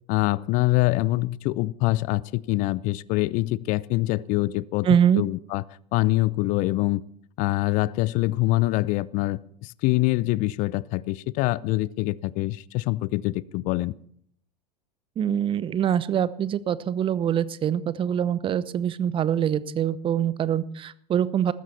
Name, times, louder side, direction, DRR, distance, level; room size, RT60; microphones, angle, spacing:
voice 1, 0.1-4.9 5.2-5.6 5.9-7.0 7.4-13.9, left 19 dB, 40° left, 22 dB, 0.6 m, -24 dB
voice 2, 4.8-5.2 15.2-21.5, right 9 dB, 25° right, 18 dB, 0.9 m, -24 dB
20.0 x 15.0 x 4.3 m, 0.64 s
figure-of-eight pair, 85°, 21 cm